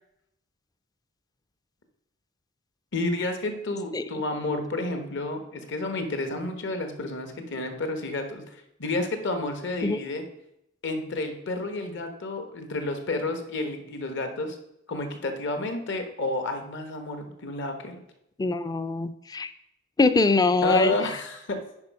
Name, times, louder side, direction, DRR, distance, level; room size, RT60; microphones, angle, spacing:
voice 1, 2.9-8.4 8.8-10.3 10.8-14.6 14.9-18.0 20.6-21.6, left 2 dB, 60° left, 6 dB, 1.2 m, -30 dB
voice 2, 18.4-19.5 20.0-20.9, left 3 dB, 20° left, 12 dB, 0.4 m, -23 dB
9.6 x 5.0 x 4.7 m, 0.79 s
head